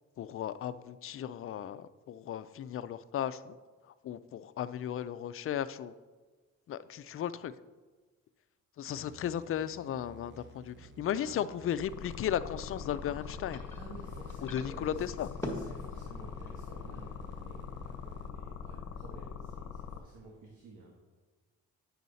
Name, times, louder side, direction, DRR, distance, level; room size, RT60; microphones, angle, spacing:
voice 1, 0.2-3.6 3.8-5.9 6.7-7.5 8.8-13.6 14.5-15.3, left 10 dB, 45° left, 14 dB, 0.4 m, -35 dB
sound 1, 8.9-18.3, right 3 dB, 40° right, 1.1 m, -54 dB
voice 2, 11.1-11.6 13.7-21.0, right 2 dB, 85° right, -1 dB, 1.5 m, -52 dB
sound 2, 11.8-20.0, left 8 dB, 70° left, 0.8 m, -43 dB
sound 3, 12.1-17.2, left 1 dB, 10° left, 1.6 m, -46 dB
9.2 x 6.4 x 4.1 m, 1.3 s
cardioid pair, 90°, 30 cm